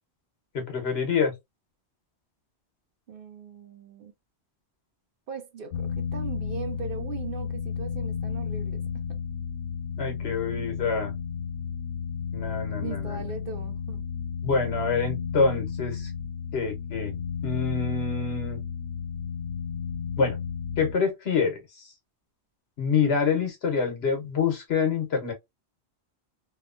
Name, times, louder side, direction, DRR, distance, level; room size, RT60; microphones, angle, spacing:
voice 1, 0.5-1.3 10.0-11.1 12.3-13.3 14.4-16.1 16.5-17.2 17.4-18.6 20.2-20.4 20.8-21.9 22.8-25.3, left 5 dB, 70° left, 1.2 m, -26 dB
voice 2, 3.1-4.1 5.3-8.8 12.8-14.0, right 6 dB, 60° right, 0.7 m, -39 dB
sound 1, 5.7-20.9, left 6 dB, 85° left, 1.0 m, -32 dB
2.9 x 2.1 x 2.4 m
omnidirectional pair, 1.1 m